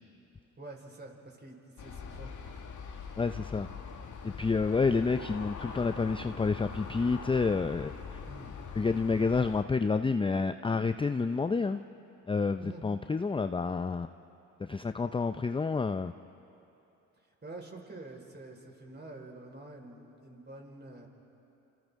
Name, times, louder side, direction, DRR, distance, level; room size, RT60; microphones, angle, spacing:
voice 1, 0.6-2.6 2.9-3.2 8.2-8.5 12.6-12.8 17.4-21.1, right 2 dB, 25° right, 0 dB, 4.8 m, -47 dB
Aircraft, 1.8-9.6, left 6 dB, 50° left, 2.1 m, -43 dB
voice 2, 3.2-3.7 4.2-8.2 8.8-11.8 12.3-14.1 14.6-16.1, left 4 dB, 15° left, 10 dB, 0.5 m, -29 dB
29.0 x 28.0 x 3.7 m, 2.9 s
supercardioid pair, 60°, 38 cm